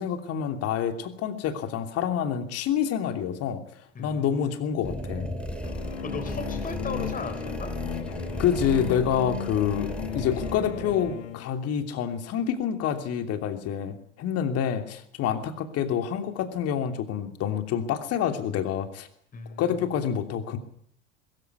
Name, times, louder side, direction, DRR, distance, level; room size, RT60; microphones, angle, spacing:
voice 1, 0.0-3.6 4.0-5.3 8.4-9.9 10.1-19.1 19.6-20.6, left 8 dB, 40° left, 7 dB, 3.0 m, -27 dB
voice 2, 3.9-4.9 6.0-7.7 19.3-19.7, left 4 dB, 20° left, 7 dB, 3.8 m, -37 dB
sound 1, 4.8-10.9, left 1 dB, 5° left, 2.5 m, -37 dB
sound 2, 4.9-11.2, right 3 dB, 15° right, 4.0 m, -39 dB
sound 3, 5.6-11.5, left 13 dB, 65° left, 1.2 m, -36 dB
22.0 x 14.5 x 9.8 m, 0.64 s
figure-of-eight pair, 80°, 37 cm